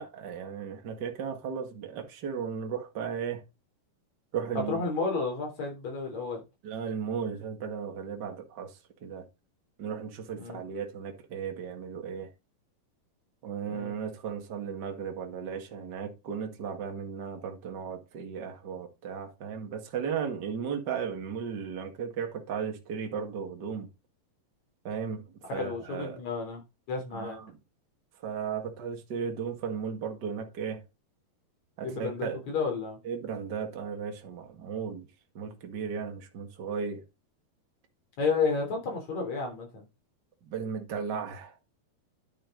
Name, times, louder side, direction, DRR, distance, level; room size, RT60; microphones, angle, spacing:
voice 1, 0.0-3.4 4.3-4.8 6.6-8.7 9.0-9.3 9.8-12.3 13.4-23.9 24.8-26.2 27.1-27.6 28.2-30.8 31.8-32.4 33.0-35.1 35.3-37.0 40.4-41.5, right 6 dB, 40° right, 1.6 m, -35 dB
voice 2, 4.7-6.4 10.4-10.6 13.7-13.9 25.5-26.6 26.9-27.4 31.8-33.0 38.2-39.8, left 4 dB, 50° left, 4.6 m, -31 dB
10.0 x 7.1 x 3.8 m
omnidirectional pair, 4.2 m